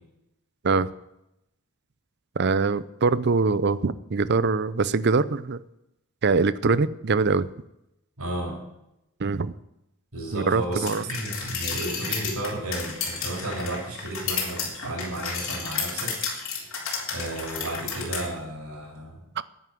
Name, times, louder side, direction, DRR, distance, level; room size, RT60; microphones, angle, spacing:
voice 1, 2.4-5.6 6.2-7.5 9.2-9.5 10.3-11.1 19.4-19.5, right 4 dB, 50° right, 17 dB, 0.6 m, -23 dB
voice 2, 8.2-8.6 10.1-16.7 17.1-19.2, right 1 dB, 75° right, 0 dB, 5.5 m, -33 dB
sound 1, 10.9-18.2, left 5 dB, 60° left, 3.6 m, -32 dB
11.0 x 9.5 x 9.3 m, 0.86 s
head